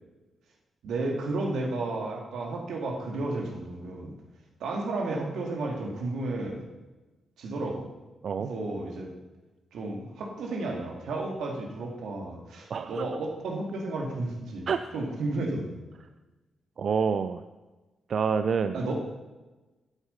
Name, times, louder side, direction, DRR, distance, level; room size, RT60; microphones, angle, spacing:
voice 1, 0.8-4.1 4.6-6.6 7.4-7.9 8.5-9.1 9.7-14.7 14.9-15.8 18.7-18.9, right 2 dB, 80° right, 1 dB, 2.4 m, -32 dB
voice 2, 12.7-13.1 14.7-14.8 16.8-17.4 18.1-18.8, right 6 dB, 50° right, 9 dB, 0.4 m, -27 dB
12.0 x 8.2 x 5.6 m, 1.2 s
wide cardioid pair, 150°, 0 cm